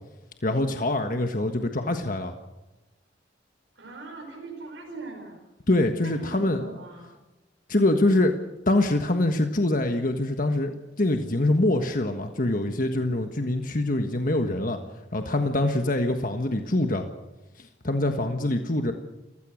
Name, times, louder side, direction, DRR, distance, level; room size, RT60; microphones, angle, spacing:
voice 1, 0.4-2.3 5.7-6.6 7.7-8.3 8.7-14.8 15.1-17.1 17.6-18.9, left 1 dB, 45° left, 5 dB, 1.4 m, -24 dB
voice 2, 3.7-5.4 6.0-7.1, right 3 dB, 75° right, -1 dB, 4.9 m, -41 dB
29.5 x 16.0 x 6.4 m, 1.0 s
head